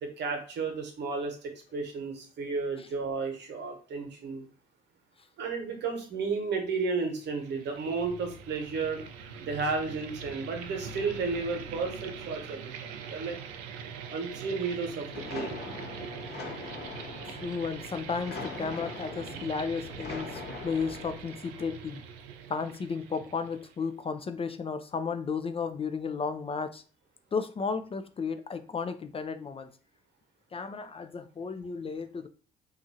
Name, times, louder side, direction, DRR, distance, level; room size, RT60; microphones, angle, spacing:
voice 1, 0.0-4.4 5.4-9.0 9.4-13.4 14.1-15.6, right 4 dB, 60° right, 1.0 m, -33 dB
sound 1, 7.2-23.9, right 6 dB, 80° right, 0.4 m, -43 dB
sound 2, 15.1-21.2, left 4 dB, 55° left, 1.0 m, -41 dB
voice 2, 17.2-22.0 22.5-26.8 27.3-29.7 30.5-32.3, left 5 dB, 30° left, 0.4 m, -34 dB
2.6 x 2.4 x 2.7 m
hypercardioid pair, 50°, 20 cm